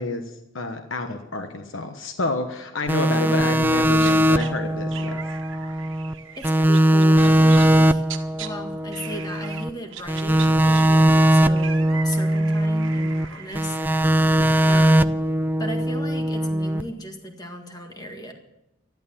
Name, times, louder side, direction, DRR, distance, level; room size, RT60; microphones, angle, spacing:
voice 1, 0.0-5.2, left 2 dB, 75° left, 6 dB, 1.2 m, -29 dB
sound 1, 2.9-6.1 6.4-9.7 10.1-13.3 13.6-16.8, right 1 dB, 10° right, 0.4 m, -20 dB
voice 2, 3.1-3.5 6.4-8.0 8.4-14.1 14.6-15.1 15.6-18.3, equal, 20° left, 4 dB, 1.8 m, -36 dB
sound 2, 4.0-4.5 4.9-8.5 8.9-9.6 9.9-14.7, right 8 dB, 70° right, 1.4 m, -39 dB
13.5 x 11.0 x 7.3 m, 0.93 s
head